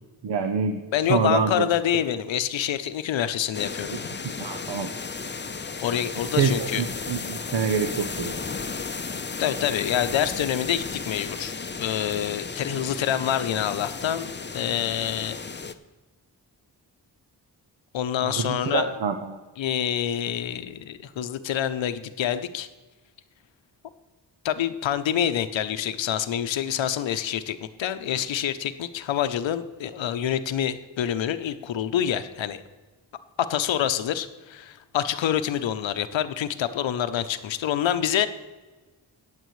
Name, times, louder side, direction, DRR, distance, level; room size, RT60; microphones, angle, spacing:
voice 1, 0.2-0.8 1.1-1.7 4.4-4.9 6.3-8.4 18.2-19.4, right 6 dB, 70° right, 7 dB, 0.9 m, -26 dB
voice 2, 0.9-4.1 5.5-6.8 9.4-15.4 17.9-18.9 19.6-22.7 24.4-32.6 33.4-38.3, left 10 dB, 90° left, 12 dB, 0.7 m, -27 dB
sound 1, 3.5-15.7, left 4 dB, 25° left, 0.7 m, -34 dB
18.5 x 7.6 x 3.2 m, 1.3 s
cardioid pair, 40°, 44 cm